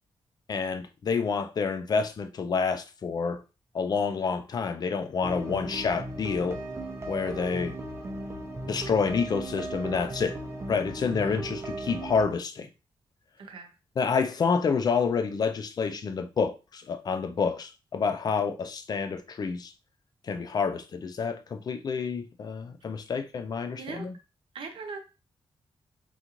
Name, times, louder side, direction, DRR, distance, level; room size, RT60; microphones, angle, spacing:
voice 1, 0.5-3.4 3.7-6.6 7.1-7.8 8.6-10.4 10.7-12.7 14.0-19.7 20.2-24.1, left 5 dB, 45° left, 0.4 m, -28 dB
sound 1, 5.2-12.2, right 2 dB, 30° right, 0.4 m, -37 dB
voice 2, 13.4-13.7 23.8-24.1 24.5-25.0, right 4 dB, 65° right, 0.7 m, -40 dB
3.8 x 2.4 x 2.9 m
wide cardioid pair, 160°, 10 cm